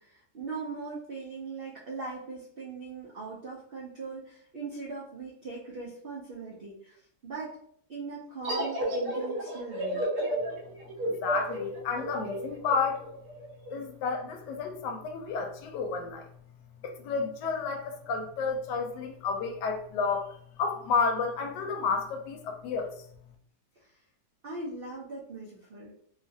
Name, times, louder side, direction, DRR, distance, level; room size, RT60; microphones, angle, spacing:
voice 1, 0.0-7.6 7.9-10.1 23.8-23.9 24.4-25.9, right 3 dB, 90° right, -5 dB, 0.5 m, -40 dB
sound 1, 8.4-13.7, right 1 dB, 55° right, 1.0 m, -32 dB
voice 2, 11.1-13.0 13.7-16.3 16.8-20.3 20.6-22.9, left 5 dB, 85° left, 4 dB, 1.2 m, -31 dB
3.0 x 2.4 x 2.6 m, 0.63 s
omnidirectional pair, 1.8 m